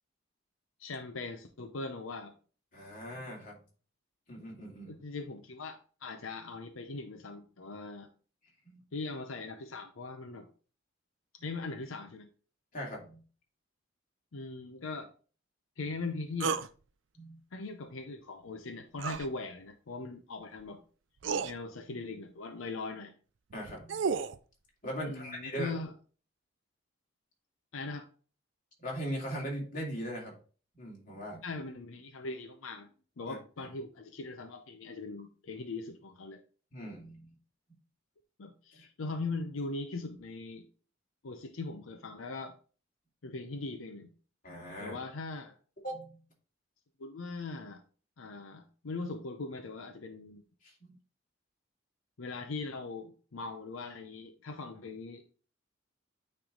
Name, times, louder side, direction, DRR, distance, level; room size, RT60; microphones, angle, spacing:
voice 1, 0.8-2.3 4.9-8.1 8.9-10.5 11.4-12.3 14.3-15.1 15.8-16.5 17.5-20.8 21.4-23.1 25.0-25.9 27.7-28.1 31.4-32.9 33.2-36.4 38.4-40.6 41.2-42.6 43.2-44.1 44.8-45.6 47.0-47.8 48.2-50.4 52.2-55.2, left 3 dB, 90° left, 6 dB, 0.7 m, -40 dB
voice 2, 2.7-3.6 4.3-5.0 8.6-8.8 12.7-13.2 17.2-17.4 21.2-21.4 23.5-24.0 24.8-25.8 28.8-30.3 30.8-31.4 33.3-33.4 36.7-37.3 38.8-38.9 44.4-45.0 45.8-46.2 50.6-50.9, equal, 40° left, -2 dB, 2.5 m, -39 dB
sound 1, 16.4-16.7 19.0-19.3 20.6-20.7 21.2-21.5 23.5-24.4, right 5 dB, 65° right, 0.4 m, -32 dB
8.9 x 3.4 x 3.8 m, 0.38 s
head